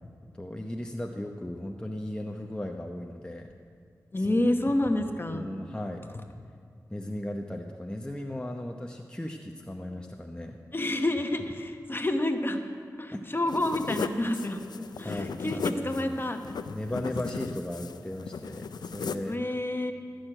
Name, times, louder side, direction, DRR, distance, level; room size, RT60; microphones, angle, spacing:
voice 1, 0.3-3.5 4.2-4.4 5.3-6.1 6.9-10.6 13.1-13.2 14.8-16.1 16.7-19.4, left 1 dB, 10° left, 2 dB, 0.8 m, -36 dB
voice 2, 4.1-5.5 10.7-12.6 13.0-14.6 15.0-16.6 19.3-19.9, left 1 dB, 30° left, 5 dB, 1.1 m, -28 dB
sound 1, 13.5-19.3, left 5 dB, 90° left, 0.4 m, -36 dB
13.0 x 6.4 x 8.9 m, 2.2 s
cardioid pair, 50°, 7 cm